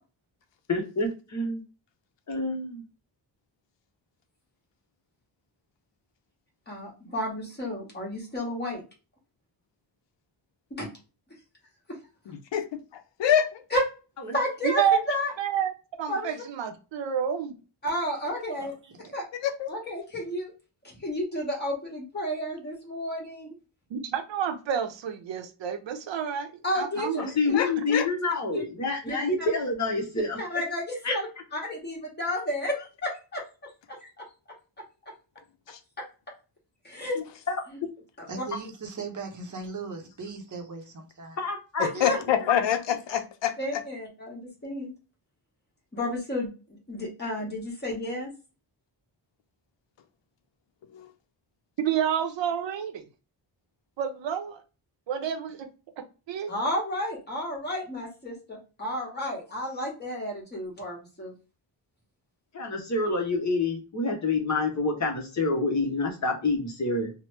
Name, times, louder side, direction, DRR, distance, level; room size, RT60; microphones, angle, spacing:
voice 1, 0.7-1.6 2.3-2.8 27.4-30.4 31.0-31.1 41.4-41.9 62.5-67.1, left 3 dB, 40° left, 2 dB, 0.7 m, -27 dB
voice 2, 6.7-8.8 10.8-10.9 11.9-12.0 13.7-13.8 14.3-15.3 16.1-16.4 17.8-18.7 19.1-19.2 19.7-20.5 20.8-23.5 26.6-27.6 28.5-28.6 29.0-29.5 30.4-34.2 36.8-37.2 37.7-37.8 38.2-38.4 41.8-42.2 43.6-44.9 45.9-48.3 56.5-61.3, left 1 dB, 25° left, -3 dB, 1.1 m, -32 dB
voice 3, 12.3-13.6 19.4-19.7 27.5-28.1 35.7-35.8 42.0-43.5 50.9-51.1, left 9 dB, 80° left, 8 dB, 0.6 m, -26 dB
voice 4, 14.6-15.0 15.4-15.7 16.0-17.5 23.9-26.5 26.8-27.3 51.8-53.0 54.0-54.6 55.1-55.7 56.3-56.5, right 8 dB, 80° right, 7 dB, 0.6 m, -29 dB
voice 5, 38.3-41.4 41.9-42.3, right 4 dB, 45° right, 4 dB, 0.6 m, -38 dB
3.0 x 2.0 x 3.1 m, 0.32 s
wide cardioid pair, 170°, 44 cm